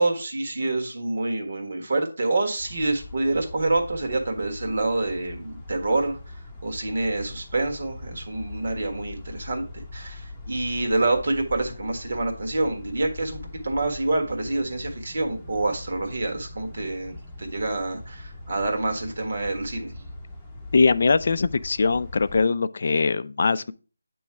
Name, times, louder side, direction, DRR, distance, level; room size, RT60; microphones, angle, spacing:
voice 1, 0.0-19.9, right 2 dB, 55° right, 1.5 m, -27 dB
sound 1, 2.6-22.4, left 2 dB, 5° left, 0.7 m, -41 dB
voice 2, 20.7-23.7, left 4 dB, 50° left, 0.3 m, -21 dB
8.3 x 3.1 x 4.6 m
figure-of-eight pair, 170°, 0 cm